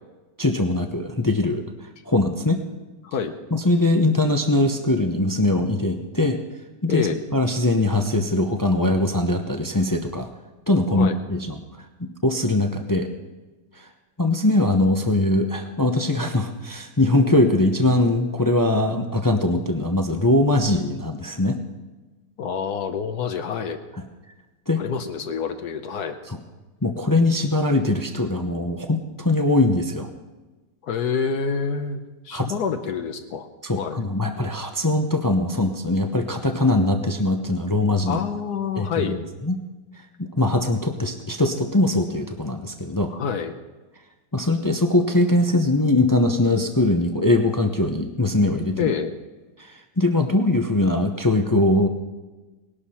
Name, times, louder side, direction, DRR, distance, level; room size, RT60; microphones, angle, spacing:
voice 1, 0.4-1.6 2.1-2.6 3.5-6.4 6.8-7.1 7.3-10.3 10.7-11.6 12.0-13.1 13.8-13.9 14.2-21.6 24.7-24.8 26.3-26.4 26.8-30.1 32.3-32.5 33.6-38.2 38.7-39.2 39.4-39.6 40.2-43.1 44.3-48.9 50.0-51.9, left 2 dB, 30° left, 5 dB, 0.3 m, -21 dB
voice 2, 6.9-7.2 11.0-11.2 22.4-23.8 24.8-26.2 30.8-32.0 32.2-33.5 33.7-34.0 38.1-39.2 43.1-43.5 48.8-49.1, left 6 dB, 70° left, 7 dB, 1.3 m, -27 dB
19.0 x 11.5 x 4.3 m, 1.2 s
omnidirectional pair, 1.8 m